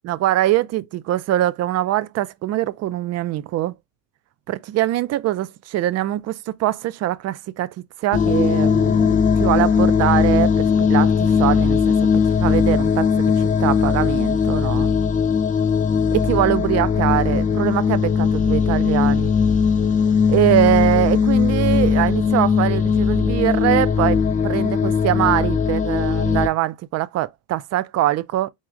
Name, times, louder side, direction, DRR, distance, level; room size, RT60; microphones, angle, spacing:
voice 1, 0.0-3.7 4.5-14.9 16.1-19.3 20.3-28.5, right 14 dB, 40° right, 0.4 m, -23 dB
sound 1, 8.1-26.5, left 6 dB, 20° left, 0.4 m, -19 dB
4.1 x 3.5 x 2.5 m
supercardioid pair, 90°, 42 cm